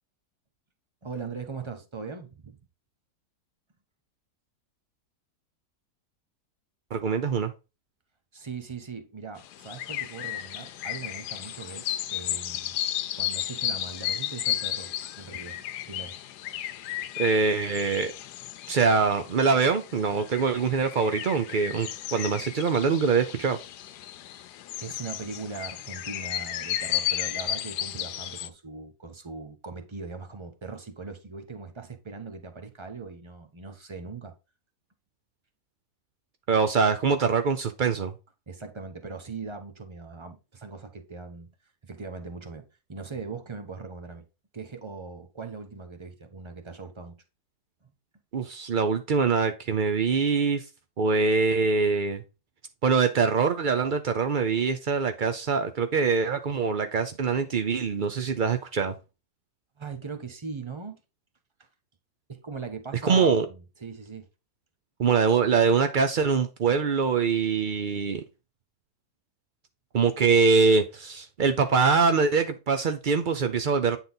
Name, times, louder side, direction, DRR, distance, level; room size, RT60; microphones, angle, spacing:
voice 1, 1.0-2.6 8.3-12.7 13.1-16.2 24.8-34.3 38.5-41.5 41.8-44.2 44.5-47.2 59.8-61.0 62.3-64.3, right 4 dB, 20° right, 0.8 m, -40 dB
voice 2, 6.9-7.5 17.2-18.1 18.7-23.6 36.5-38.1 48.3-50.6 51.0-52.2 52.8-58.9 63.0-63.5 65.0-68.2 69.9-74.0, right 5 dB, 75° right, 0.4 m, -24 dB
sound 1, 9.4-28.5, left 12 dB, 80° left, 1.2 m, -34 dB
9.1 x 4.0 x 3.9 m
omnidirectional pair, 1.8 m